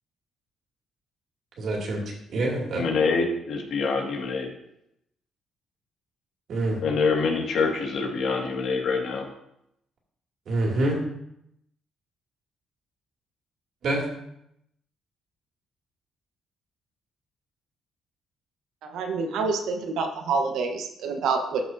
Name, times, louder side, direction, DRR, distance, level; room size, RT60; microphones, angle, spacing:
voice 1, 1.6-2.0 2.3-2.8 6.5-6.8 10.5-11.0 13.8-14.0, right 2 dB, 65° right, -1 dB, 2.5 m, -26 dB
voice 2, 2.8-4.5 6.8-9.2, left 4 dB, 70° left, 0 dB, 2.1 m, -25 dB
voice 3, 18.8-21.6, right 4 dB, 80° right, 4 dB, 1.1 m, -27 dB
13.0 x 6.0 x 2.8 m, 0.78 s
cardioid pair, 90°, 0 cm